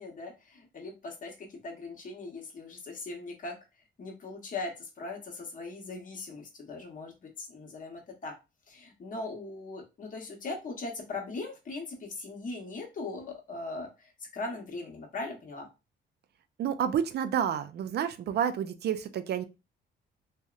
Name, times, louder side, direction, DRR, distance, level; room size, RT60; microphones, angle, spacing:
voice 1, 0.0-3.5 4.0-8.3 8.7-15.7, left 3 dB, 40° left, 1 dB, 0.8 m, -40 dB
voice 2, 16.6-19.4, right 9 dB, 55° right, 10 dB, 0.4 m, -29 dB
2.7 x 2.0 x 2.3 m, 0.27 s
cardioid pair, 90°, 20 cm